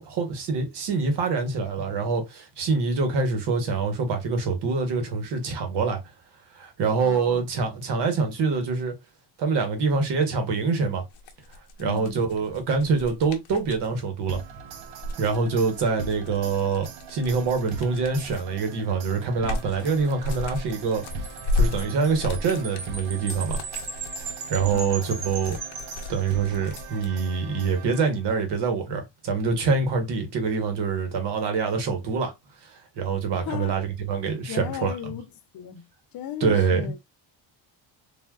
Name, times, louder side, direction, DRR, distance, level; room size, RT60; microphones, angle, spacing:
voice 1, 0.0-6.0 6.6-8.9 9.4-11.0 11.8-14.4 15.2-21.0 21.5-23.6 24.5-25.6 26.1-32.3 32.7-34.9 36.4-36.9, right 4 dB, 60° right, 1.1 m, -25 dB
voice 2, 7.0-7.5 11.8-12.3 24.7-25.3 33.4-33.8 34.5-37.0, left 10 dB, 50° left, 0.7 m, -36 dB
sound 1, 11.1-13.9 14.8-18.6 19.0-27.1, left 2 dB, 75° left, 0.8 m, -33 dB
sound 2, 14.3-28.4, right 5 dB, 75° right, 0.8 m, -41 dB
Wind chime, 21.1-26.8, right 4 dB, 35° right, 0.8 m, -38 dB
3.5 x 2.4 x 2.3 m
cardioid pair, 150°, 46 cm